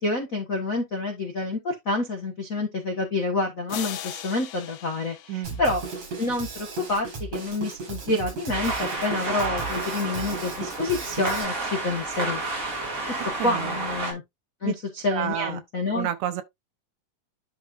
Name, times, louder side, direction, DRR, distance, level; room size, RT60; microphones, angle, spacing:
voice 1, 0.0-5.8 6.2-12.4 13.4-14.2 14.6-16.1, left 2 dB, 70° left, 0.7 m, -28 dB
sound 1, 3.7-6.4, left 11 dB, 85° left, 2.4 m, -39 dB
voice 2, 5.3-5.6 13.4-13.8 14.6-14.8 15.1-15.6 15.9-16.4, right 11 dB, 75° right, 2.0 m, -30 dB
Drum kit, 5.4-11.4, right 4 dB, 60° right, 7.1 m, -36 dB
sound 2, 8.5-14.1, right 2 dB, 30° right, 2.1 m, -30 dB
11.5 x 4.1 x 2.5 m
omnidirectional pair, 3.6 m